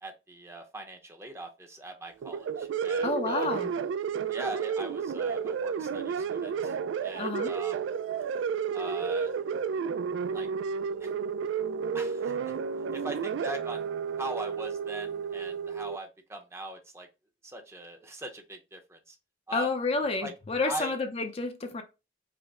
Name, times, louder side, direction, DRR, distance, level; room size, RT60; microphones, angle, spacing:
voice 1, 0.0-3.5 4.3-6.8 7.0-7.8 8.7-9.3 10.3-10.5 11.0-11.1 11.9-12.5 12.9-13.9 14.2-17.1 17.4-19.2 19.5-19.7 20.2-20.3 20.6-21.0, right 2 dB, 15° right, 0.8 m, -41 dB
sound 1, 2.2-16.0, right 6 dB, 85° right, 0.3 m, -32 dB
voice 2, 3.0-3.7 7.1-7.5 19.5-21.8, left 3 dB, 35° left, 0.5 m, -30 dB
5.0 x 2.1 x 4.7 m
head